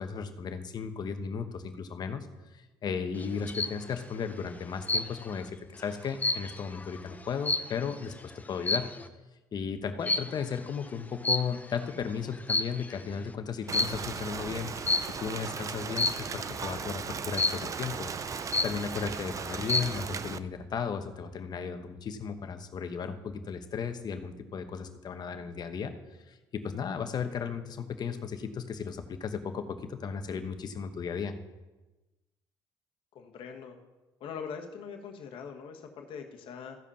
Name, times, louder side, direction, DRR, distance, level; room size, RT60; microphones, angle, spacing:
voice 1, 0.0-2.3 2.5-8.9 9.5-14.7 15.2-18.1 18.6-25.9 26.3-31.3, left 6 dB, 45° left, 7 dB, 1.1 m, -35 dB
sound 1, 3.2-3.8 4.9-5.4 5.8-8.0 8.6-9.0 10.0-10.4 11.2-11.8 12.3-13.0 13.7-14.1 14.9-15.3 16.0-16.4 17.4-17.8 18.2-18.3 18.5-19.1 19.5-20.0, left 2 dB, 15° left, 0.6 m, -30 dB
Rain, 13.7-20.4, right 6 dB, 35° right, 0.5 m, -37 dB
voice 2, 33.1-33.8 34.2-36.8, left 6 dB, 65° left, 3 dB, 1.4 m, -42 dB
15.0 x 5.1 x 5.6 m, 1.1 s
supercardioid pair, 85°, 9 cm